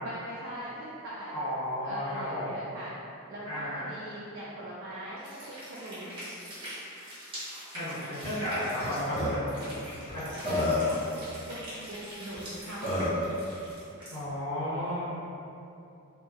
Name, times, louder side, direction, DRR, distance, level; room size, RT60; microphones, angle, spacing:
voice 1, 0.0-1.4 1.8-2.9 3.3-5.2 5.5-6.2 8.0-8.2 10.4-13.4, right 1 dB, 55° right, -8 dB, 0.4 m, -41 dB
voice 2, 1.3-2.6 3.4-3.8 7.7-9.7 10.1-10.5 14.1-15.1, left 1 dB, 65° left, -15 dB, 1.4 m, -33 dB
sound 1, 5.2-14.2, equal, 25° right, 1.0 m, -43 dB
Burping eructation, 8.8-8.9 9.1-9.3 10.1-10.2 10.4-11.0 12.3-12.4 12.8-13.2, left 2 dB, 30° left, 0.9 m, -28 dB
2.8 x 2.7 x 2.3 m, 2.7 s
head